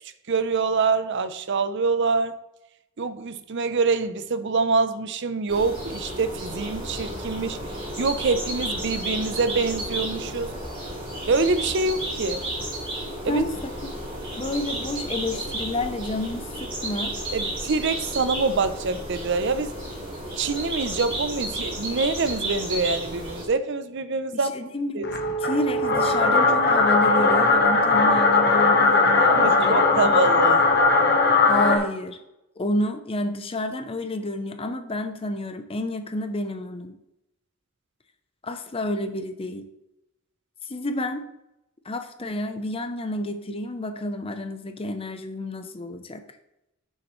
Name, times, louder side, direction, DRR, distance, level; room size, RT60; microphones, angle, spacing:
voice 1, 0.3-2.3 3.0-7.6 8.0-10.5 11.3-12.5 13.2-13.4 17.3-19.7 20.4-25.1 29.3-30.7, right 4 dB, 55° right, 12 dB, 0.6 m, -25 dB
sound 1, 5.5-23.4, right 1 dB, 25° right, 3.0 m, -32 dB
voice 2, 13.3-13.7 14.4-17.2 24.5-25.1 25.4-30.3 31.4-32.2 32.6-37.0 38.4-39.7 40.7-41.3 41.8-46.2, left 1 dB, 25° left, 8 dB, 0.6 m, -30 dB
sound 2, 25.0-31.8, left 3 dB, 50° left, 1.2 m, -19 dB
10.0 x 6.4 x 3.1 m, 0.88 s
head